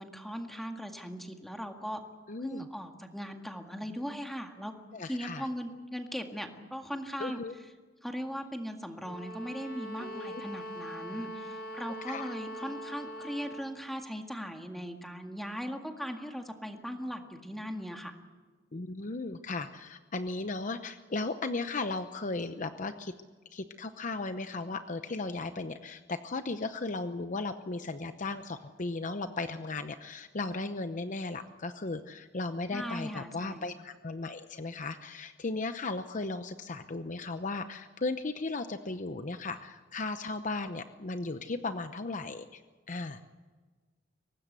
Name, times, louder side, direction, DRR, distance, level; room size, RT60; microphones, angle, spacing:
voice 1, 0.0-2.0 2.4-4.7 5.1-7.4 8.0-18.2 32.7-33.6, equal, ahead, 4 dB, 1.9 m, -39 dB
voice 2, 2.3-2.7 4.9-5.5 7.2-7.5 10.0-10.4 12.1-12.3 18.7-23.1 23.5-42.6 42.9-43.2, left 3 dB, 45° left, 9 dB, 0.8 m, -36 dB
sound 1, 9.0-13.7, equal, 60° left, 4.4 m, -42 dB
23.5 x 19.0 x 8.2 m, 1.4 s
head